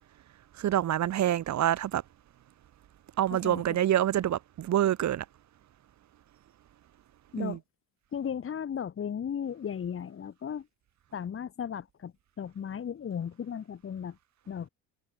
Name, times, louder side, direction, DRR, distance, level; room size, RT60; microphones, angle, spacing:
voice 1, 0.6-2.0 3.2-5.2 7.4-7.6, right 12 dB, 45° right, 1.5 m, -26 dB
voice 2, 8.1-10.7 11.1-14.2 14.5-14.7, left 8 dB, 35° left, 2.7 m, -35 dB
cardioid pair, 155°, 38 cm